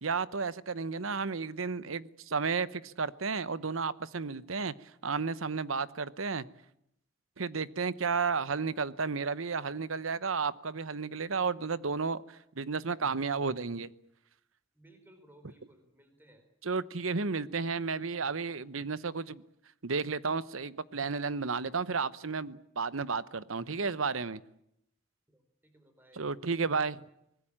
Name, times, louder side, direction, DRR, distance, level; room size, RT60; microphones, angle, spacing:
voice 1, 0.0-6.4 7.4-13.9 16.6-19.4 19.8-24.4 26.1-27.0, right 4 dB, 85° right, 0.9 m, -32 dB
voice 2, 14.7-16.4 25.3-26.2, right 1 dB, 10° right, 4.2 m, -60 dB
24.5 x 19.5 x 8.8 m
head